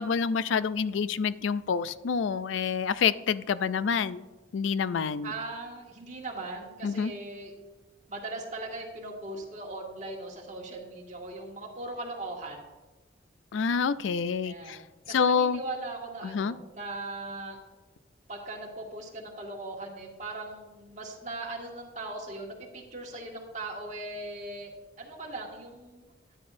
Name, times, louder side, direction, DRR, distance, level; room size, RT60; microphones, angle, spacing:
voice 1, 0.0-4.2 4.5-5.3 6.8-7.1 13.5-14.8 15.1-15.6 16.2-16.6, left 6 dB, 75° left, 15 dB, 0.4 m, -27 dB
voice 2, 5.2-7.5 8.1-12.6 14.4-17.6 18.3-24.7 25.0-26.1, right 2 dB, 40° right, 0 dB, 1.8 m, -39 dB
13.5 x 9.8 x 2.6 m, 1.2 s
head